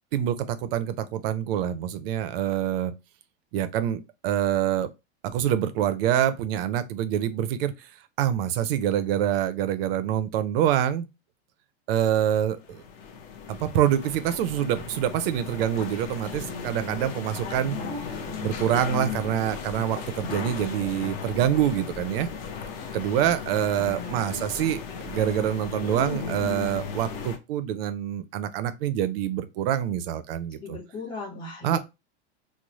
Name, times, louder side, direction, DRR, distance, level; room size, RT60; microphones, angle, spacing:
voice 1, 0.1-2.9 3.5-4.9 5.2-7.7 8.2-11.1 11.9-12.8 13.5-17.8 18.4-22.3 22.9-30.8 31.6-31.8, right 10 dB, 60° right, 0.5 m, -26 dB
sound 1, 12.5-27.4, left 6 dB, 35° left, 0.6 m, -36 dB
voice 2, 16.4-17.1 17.4-18.4 23.8-24.2 30.6-31.8, left 2 dB, 15° left, 1.1 m, -39 dB
3.1 x 2.0 x 3.8 m
supercardioid pair, 170°, 33 cm